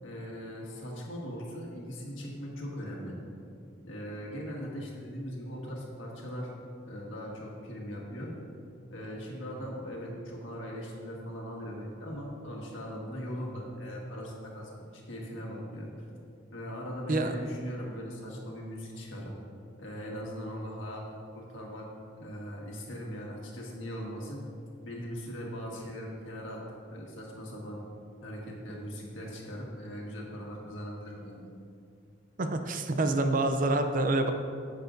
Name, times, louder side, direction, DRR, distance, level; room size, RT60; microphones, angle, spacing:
voice 1, 0.0-3.2 3.8-6.5 6.9-8.3 8.9-15.9 16.5-19.3 19.8-21.9 22.2-24.4 24.8-26.6 26.9-27.8 28.2-31.4, equal, 75° left, -2 dB, 1.7 m, -39 dB
voice 2, 32.4-34.3, right 2 dB, 45° right, 7 dB, 0.5 m, -27 dB
11.0 x 8.0 x 2.6 m, 2.4 s
head